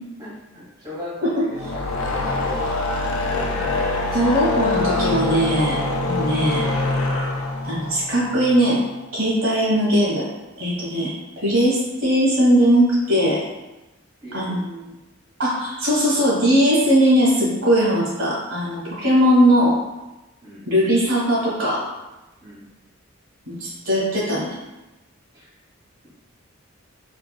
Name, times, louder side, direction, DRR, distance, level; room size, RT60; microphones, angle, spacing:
voice 1, 0.2-2.5 14.2-14.6 20.4-20.6 22.4-22.6 25.3-25.5, left 1 dB, 20° right, -10 dB, 1.2 m, -37 dB
sound 1, 1.5-8.9, left 2 dB, 75° left, 0.5 m, -24 dB
voice 2, 4.1-6.6 7.6-8.8 9.1-10.3 10.6-13.4 14.3-14.9 15.4-19.7 20.7-21.8 23.5-24.6, equal, 75° right, -6 dB, 1.3 m, -19 dB
4.2 x 2.3 x 2.2 m, 1.0 s
head